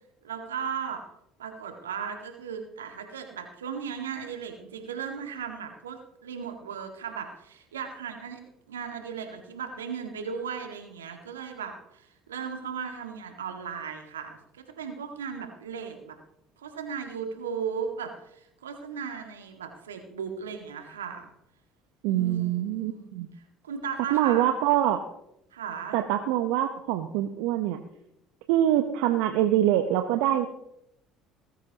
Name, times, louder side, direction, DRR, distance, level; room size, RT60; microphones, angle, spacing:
voice 1, 0.2-1.0 1.4-16.1 16.6-21.3 22.1-23.1 23.6-24.5 25.5-26.0, right 6 dB, 85° right, 5 dB, 1.9 m, -36 dB
voice 2, 22.0-23.3 24.1-25.0 25.9-27.8 28.5-30.5, right 12 dB, 70° right, 7 dB, 0.9 m, -24 dB
19.5 x 14.5 x 2.9 m, 0.80 s
hypercardioid pair, 60°, 0 cm